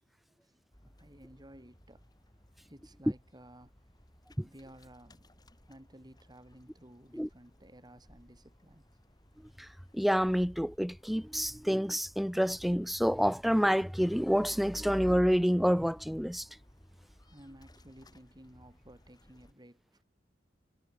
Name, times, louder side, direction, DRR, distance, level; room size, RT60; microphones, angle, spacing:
sound 1, 0.7-19.5, equal, 20° left, 5.1 m, -61 dB
voice 1, 1.0-2.1 2.7-3.7 4.4-5.4 5.7-8.9 17.2-20.0, right 1 dB, 25° right, 5.8 m, -55 dB
voice 2, 9.9-16.5, equal, ahead, 0.5 m, -28 dB
head